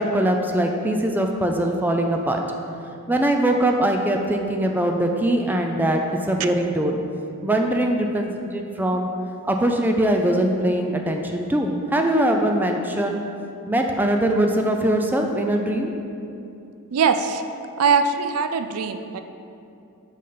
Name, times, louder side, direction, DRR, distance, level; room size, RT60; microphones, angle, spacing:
voice 1, 0.0-2.4 3.1-7.0 7.4-9.1 9.5-13.2 13.7-15.9, right 1 dB, 10° right, 3 dB, 0.4 m, -22 dB
voice 2, 16.9-17.4 17.8-19.2, right 5 dB, 85° right, 8 dB, 0.4 m, -21 dB
5.5 x 5.3 x 5.6 m, 2.7 s
head